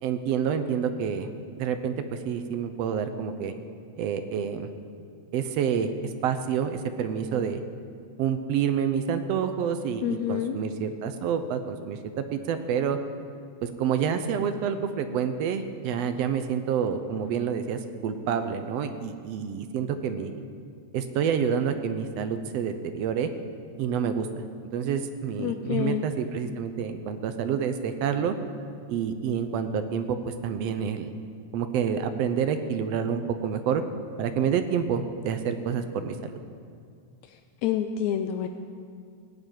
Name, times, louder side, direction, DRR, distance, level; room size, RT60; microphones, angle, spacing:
voice 1, 0.0-1.3 1.5-3.5 4.0-4.7 5.3-5.9 6.2-7.6 8.2-13.0 13.6-20.3 20.9-23.3 23.8-24.3 24.7-28.3 28.9-31.1 31.5-33.8 34.2-36.4, right 7 dB, 70° right, 9 dB, 1.6 m, -28 dB
voice 2, 10.0-10.6 25.4-26.1 37.6-38.5, left 10 dB, 80° left, 7 dB, 1.8 m, -28 dB
17.5 x 7.4 x 9.1 m, 2.2 s
omnidirectional pair, 3.4 m